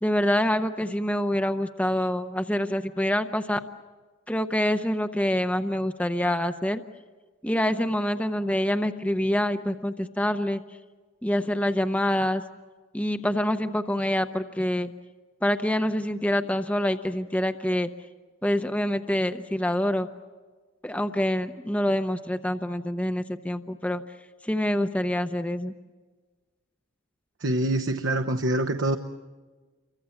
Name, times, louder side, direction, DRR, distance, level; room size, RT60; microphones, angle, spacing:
voice 1, 0.0-3.6 4.3-6.8 7.4-10.6 11.2-12.4 12.9-14.9 15.4-17.9 18.4-20.1 20.8-24.0 24.4-25.7, left 1 dB, 5° left, 8 dB, 0.8 m, -26 dB
voice 2, 27.4-29.0, right 1 dB, 65° right, 6 dB, 1.0 m, -25 dB
29.0 x 25.0 x 7.2 m, 1.3 s
head